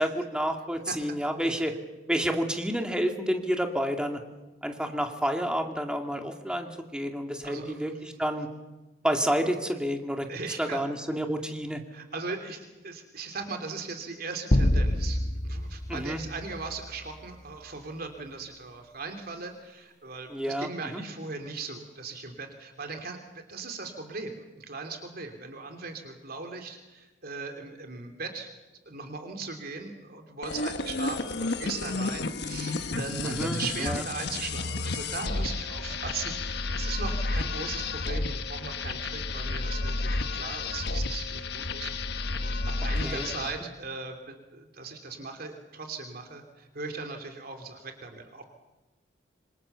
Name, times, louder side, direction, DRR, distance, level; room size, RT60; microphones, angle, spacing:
voice 1, 0.0-1.7 2.1-4.2 4.6-8.5 9.0-10.3 10.6-11.8 15.9-16.2 20.3-21.0 33.2-34.0 43.0-43.3, equal, 5° right, 4 dB, 2.4 m, -29 dB
voice 2, 10.3-10.8 11.9-28.5 28.9-42.1 42.4-48.4, right 4 dB, 55° right, 5 dB, 3.1 m, -39 dB
sound 1, 14.5-17.1, left 1 dB, 45° left, 1.2 m, -27 dB
sound 2, 30.4-43.6, left 3 dB, 65° left, 1.4 m, -31 dB
26.5 x 26.0 x 7.0 m, 1.1 s
head